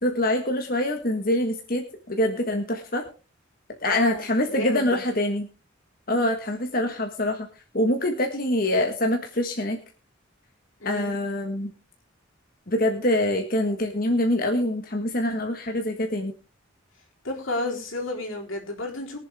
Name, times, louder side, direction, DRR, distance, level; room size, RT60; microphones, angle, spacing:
voice 1, 0.0-3.0 3.8-5.5 6.1-7.5 7.7-9.8 10.8-11.7 12.7-16.3, left 1 dB, 45° left, 4 dB, 1.5 m, -25 dB
voice 2, 3.8-5.0 10.8-11.2 17.2-19.2, left 2 dB, 90° left, -1 dB, 4.0 m, -32 dB
22.5 x 7.5 x 3.6 m, 0.35 s
head